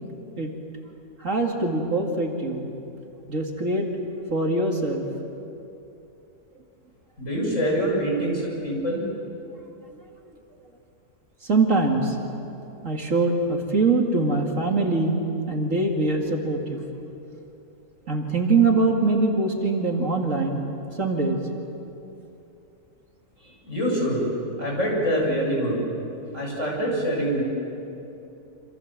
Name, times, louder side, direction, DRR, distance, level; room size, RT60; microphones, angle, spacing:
voice 1, 1.2-2.7 3.3-3.9 4.3-5.0 11.4-12.2 12.8-15.2 15.5-16.8 18.1-20.6 21.0-21.4, right 3 dB, 55° right, 1 dB, 2.6 m, -23 dB
voice 2, 7.2-9.0 23.4-24.3 24.6-25.8 26.3-27.4, equal, 50° left, -2 dB, 7.8 m, -25 dB
28.0 x 27.0 x 7.5 m, 2.9 s
omnidirectional pair, 1.7 m